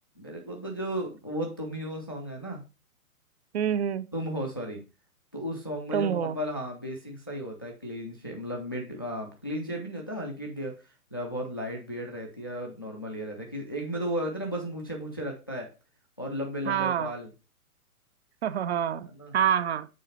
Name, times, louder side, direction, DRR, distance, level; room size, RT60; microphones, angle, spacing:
voice 1, 0.2-2.6 4.1-4.8 5.3-10.7 11.1-15.7 16.2-17.3 19.0-19.4, equal, 20° left, 0.3 m, -34 dB
voice 2, 3.5-4.1 5.9-6.4 16.7-17.1 18.4-19.9, right 9 dB, 50° right, 0.5 m, -27 dB
6.4 x 4.2 x 4.0 m
figure-of-eight pair, 125°, 44 cm